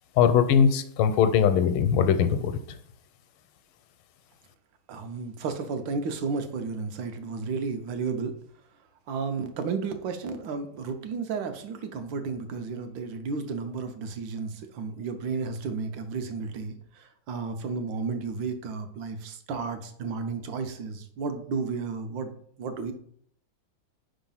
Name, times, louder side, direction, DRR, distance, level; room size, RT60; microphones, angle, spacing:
voice 1, 0.2-2.6, left 7 dB, 85° left, 9 dB, 1.5 m, -21 dB
voice 2, 4.9-8.4 9.1-22.9, right 4 dB, 70° right, 7 dB, 1.4 m, -33 dB
5.0 x 3.6 x 5.5 m, 0.63 s
omnidirectional pair, 2.2 m